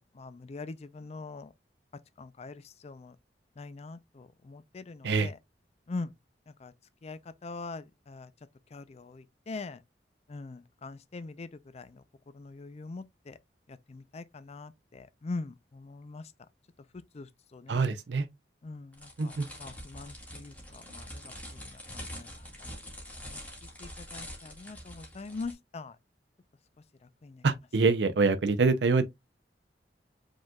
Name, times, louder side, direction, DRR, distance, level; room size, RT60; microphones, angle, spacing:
voice 1, 0.1-1.5 2.2-3.2 3.6-5.4 5.9-6.1 6.6-6.7 7.0-8.3 8.7-9.8 10.3-11.5 11.7-12.0 12.3-13.4 13.9-16.2 17.1-17.8 18.6-19.3 19.6-22.3 22.6-22.7 23.2-23.4 23.8-26.0 27.2-27.4, left 3 dB, 40° left, 0.4 m, -42 dB
voice 2, 17.7-18.3 19.2-19.5 27.4-29.0, right 4 dB, 75° right, 0.6 m, -25 dB
sound 1, 18.9-25.5, equal, 10° left, 1.7 m, -45 dB
5.2 x 3.7 x 2.3 m
head